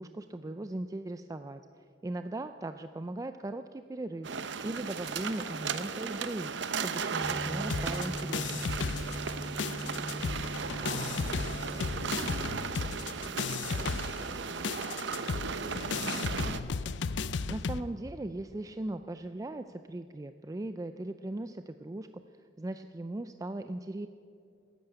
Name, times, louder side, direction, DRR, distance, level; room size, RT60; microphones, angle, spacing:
voice 1, 0.0-1.6 2.0-4.3 4.6-6.5 6.8-8.7 17.5-22.1 22.6-24.1, right 2 dB, 20° right, 9 dB, 0.4 m, -38 dB
sound 1, 4.2-16.6, right 5 dB, 75° right, 0.7 m, -36 dB
sound 2, 7.2-12.6, equal, 10° left, 0.7 m, -41 dB
sound 3, 7.7-9.3 9.6-17.8, left 5 dB, 75° left, 0.5 m, -35 dB
voice 2, 9.6-10.1 10.6-16.2, right 1 dB, 55° right, 2 dB, 3.2 m, -46 dB
13.5 x 11.5 x 9.0 m, 2.4 s
head